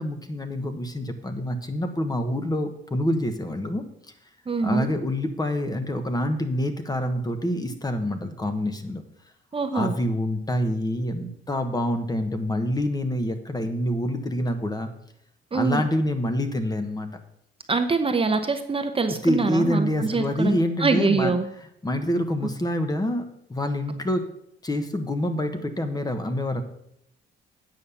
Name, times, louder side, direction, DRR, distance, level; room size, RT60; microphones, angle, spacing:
voice 1, 0.0-3.8 4.6-9.0 9.7-14.9 15.5-17.1 19.2-21.3 21.8-24.2 24.6-26.6, left 1 dB, 20° left, 7 dB, 1.2 m, -26 dB
voice 2, 4.5-4.9 9.5-9.9 15.5-15.8 17.7-21.5, right 4 dB, 25° right, 7 dB, 0.9 m, -24 dB
9.1 x 5.6 x 7.0 m, 0.77 s
cardioid pair, 90°, 20 cm